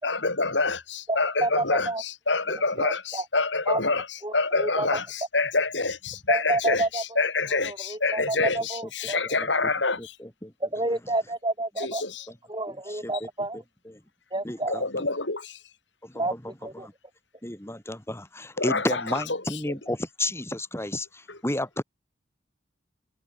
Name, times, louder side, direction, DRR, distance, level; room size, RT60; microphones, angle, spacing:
voice 1, 0.0-10.1 11.8-12.3 14.7-15.6 18.6-19.2 21.3-21.4, left 3 dB, 70° left, 5.2 m, -27 dB
voice 2, 1.1-2.0 2.8-3.2 3.7-3.8 4.2-5.0 6.3-7.2 7.7-9.4 10.6-12.0 12.5-13.6 14.3-14.9 16.1-16.3 16.6-16.9, right 2 dB, 25° right, 7.7 m, -29 dB
voice 3, 8.2-8.5 10.0-10.5 12.9-13.1 13.5-14.0 14.4-15.1 16.0-16.9 17.4-21.8, left 1 dB, 15° left, 4.6 m, -32 dB
head